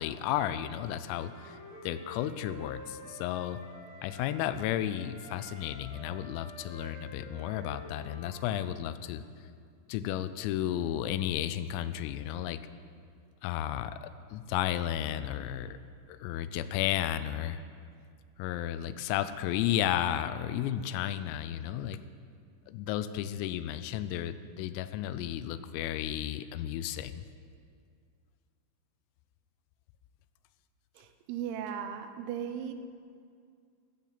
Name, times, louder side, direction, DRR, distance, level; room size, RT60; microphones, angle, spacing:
voice 1, 0.0-1.6 1.8-3.6 4.0-9.2 9.9-12.6 13.4-15.8 16.1-17.6 18.4-22.0 22.7-27.2, left 11 dB, 85° left, 13 dB, 3.2 m, -33 dB
Wind instrument woodwind instrument, 1.0-4.4 4.9-8.7, equal, 25° right, 4.6 m, -49 dB
voice 2, 30.9-32.7, right 9 dB, 85° right, 8 dB, 3.5 m, -37 dB
14.5 x 14.5 x 4.0 m, 2.2 s
omnidirectional pair, 5.9 m